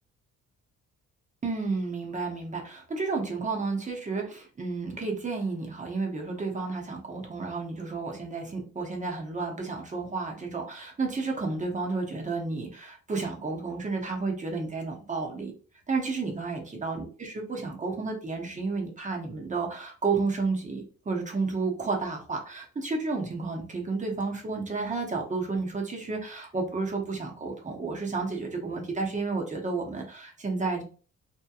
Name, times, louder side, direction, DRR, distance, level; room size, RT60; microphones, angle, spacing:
voice 1, 1.4-15.5 15.9-30.8, right 4 dB, 25° right, 1 dB, 0.8 m, -31 dB
2.9 x 2.1 x 2.3 m, 0.39 s
cardioid pair, 90°, 30 cm